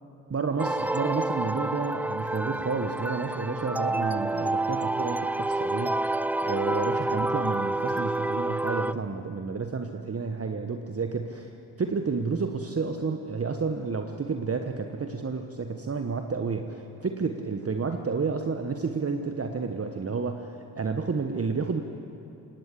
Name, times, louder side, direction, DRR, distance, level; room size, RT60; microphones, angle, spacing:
voice 1, 0.3-6.0 6.4-11.5 11.8-21.8, right 4 dB, 30° right, 5 dB, 1.2 m, -30 dB
sound 1, 0.6-8.9, right 2 dB, 5° right, 0.4 m, -28 dB
19.0 x 17.0 x 8.5 m, 2.9 s
hypercardioid pair, 40°, 49 cm